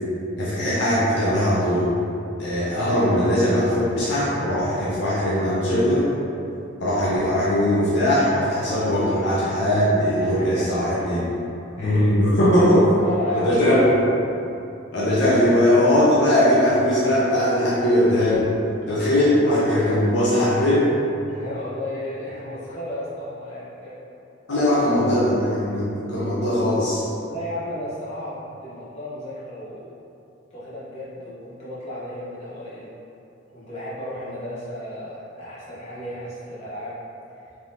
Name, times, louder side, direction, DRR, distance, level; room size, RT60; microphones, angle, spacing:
voice 1, 0.4-1.9 2.4-6.0 6.8-11.2 11.8-12.8 13.3-14.0 14.9-18.5 18.9-20.9 24.5-27.1, left 1 dB, 60° left, -9 dB, 0.7 m, -20 dB
voice 2, 10.2-11.0 11.8-12.1 13.0-13.9 21.3-23.9 24.9-25.3 27.2-29.9 30.5-32.9 33.5-37.0, left 1 dB, 35° left, -10 dB, 0.9 m, -34 dB
3.4 x 2.9 x 2.7 m, 2.7 s
head